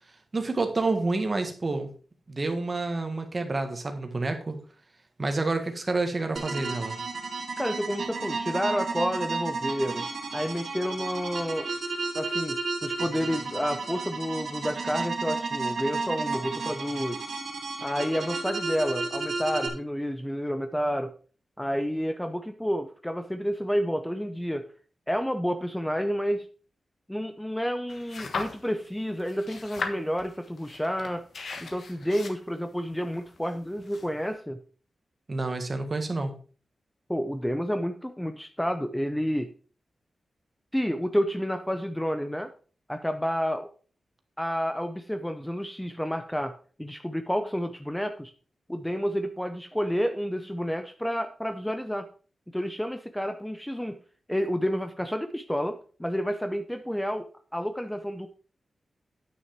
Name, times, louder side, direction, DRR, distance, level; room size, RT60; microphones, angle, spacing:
voice 1, 0.3-1.9 2.3-4.6 5.2-7.0 35.3-36.3, right 3 dB, 35° right, 6 dB, 1.6 m, -28 dB
sound 1, 6.4-19.7, right 4 dB, 75° right, 1.9 m, -32 dB
voice 2, 7.6-10.1 10.3-11.7 12.1-17.2 17.8-21.1 21.6-24.6 25.1-26.5 27.1-31.2 31.6-34.6 37.1-39.5 40.7-42.5 42.9-43.7 44.4-48.3 48.7-52.1 52.5-54.0 54.3-57.3 57.5-58.3, equal, 5° left, 8 dB, 0.6 m, -30 dB
sound 2, 27.9-28.9 29.2-34.3, left 4 dB, 70° left, 1.4 m, -38 dB
9.4 x 6.2 x 4.5 m, 0.40 s
wide cardioid pair, 105°, 0 cm